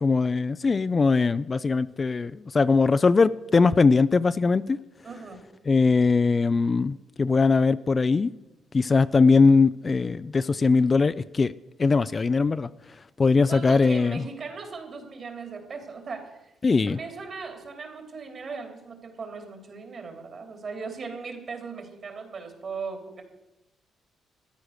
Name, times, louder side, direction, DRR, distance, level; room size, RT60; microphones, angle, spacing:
voice 1, 0.0-4.8 5.7-8.3 8.7-11.5 11.8-12.7 13.2-14.2 16.6-17.0, left 4 dB, 30° left, 15 dB, 0.4 m, -21 dB
voice 2, 5.0-5.4 13.5-16.5 16.9-23.2, right 4 dB, 50° right, 5 dB, 3.1 m, -38 dB
13.5 x 10.0 x 6.5 m, 0.96 s
cardioid pair, 90°, 0 cm